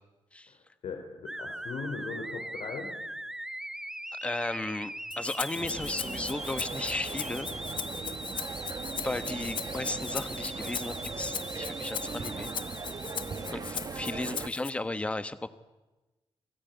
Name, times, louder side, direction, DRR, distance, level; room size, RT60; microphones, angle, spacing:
voice 1, 0.5-2.9 13.3-13.7, left 4 dB, 75° left, 3 dB, 4.3 m, -40 dB
sound 1, 1.3-13.6, right 1 dB, 5° right, 0.9 m, -41 dB
voice 2, 4.2-7.5 9.0-12.5 13.5-15.5, left 2 dB, 10° left, 11 dB, 1.2 m, -35 dB
Rattle (instrument), 5.1-14.7, left 8 dB, 55° left, 1.0 m, -39 dB
sound 2, 5.5-14.5, right 5 dB, 35° right, 1.3 m, -39 dB
29.0 x 20.5 x 9.4 m, 1.1 s
wide cardioid pair, 170°, 10 cm